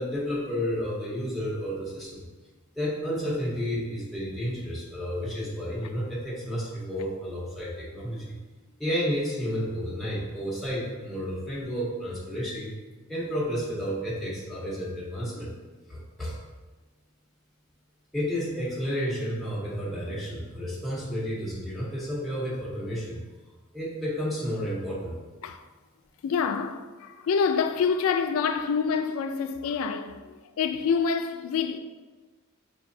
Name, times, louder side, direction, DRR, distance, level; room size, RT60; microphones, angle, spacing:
voice 1, 0.0-2.2 2.8-8.4 8.8-12.7 13.1-15.5 15.9-16.4 18.1-23.2 23.7-25.2, equal, ahead, 0.7 m, -31 dB
voice 2, 26.2-31.8, left 6 dB, 75° left, 0.3 m, -27 dB
4.9 x 3.0 x 2.6 m
head